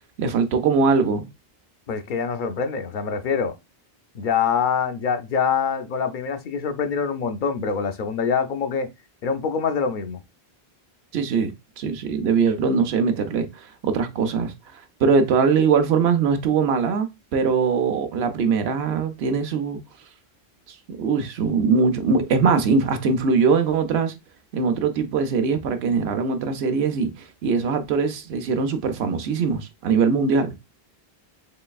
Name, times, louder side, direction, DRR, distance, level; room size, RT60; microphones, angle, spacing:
voice 1, 0.2-1.3 11.1-19.8 20.7-24.1 24.5-30.5, right 5 dB, 80° right, 0.9 m, -22 dB
voice 2, 1.9-3.5 4.1-8.9 9.2-10.2, left 6 dB, 60° left, 0.6 m, -25 dB
3.9 x 3.2 x 2.3 m
omnidirectional pair, 1.0 m